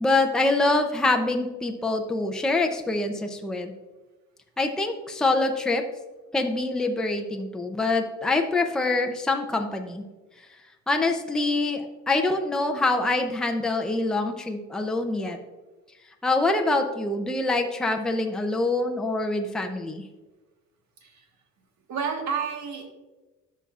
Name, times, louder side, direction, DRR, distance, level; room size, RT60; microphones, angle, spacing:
voice 1, 0.0-3.7 4.6-5.8 6.3-10.0 10.9-15.4 16.2-20.0, left 2 dB, ahead, 3 dB, 0.5 m, -25 dB
voice 2, 21.9-22.9, right 6 dB, 70° right, 3 dB, 1.5 m, -30 dB
13.0 x 5.5 x 2.4 m, 1.2 s
cardioid pair, 130°, 29 cm